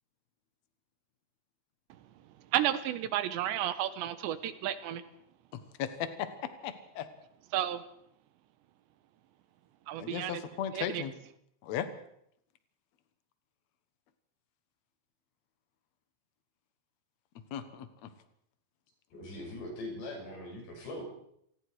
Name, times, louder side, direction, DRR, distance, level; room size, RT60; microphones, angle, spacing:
voice 1, 2.5-5.0 7.5-7.8 9.9-10.4 10.7-11.0, right 12 dB, 80° right, 12 dB, 3.3 m, -32 dB
voice 2, 5.8-7.1 10.0-11.1 11.6-11.9 17.5-18.1, left 9 dB, 85° left, 10 dB, 1.5 m, -36 dB
voice 3, 19.1-21.2, left 1 dB, 70° left, 1 dB, 8.4 m, -41 dB
28.0 x 20.0 x 4.9 m, 0.72 s
omnidirectional pair, 5.2 m